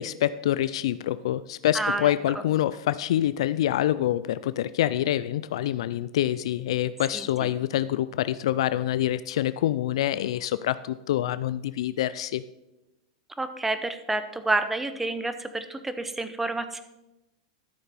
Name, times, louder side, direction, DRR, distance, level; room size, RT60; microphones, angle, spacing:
voice 1, 0.0-12.4, left 12 dB, 75° left, 15 dB, 0.3 m, -26 dB
voice 2, 1.7-2.1 7.1-7.5 13.4-16.8, right 2 dB, 10° right, 10 dB, 0.7 m, -29 dB
12.5 x 6.8 x 4.1 m, 0.99 s
hypercardioid pair, 125°, 3 cm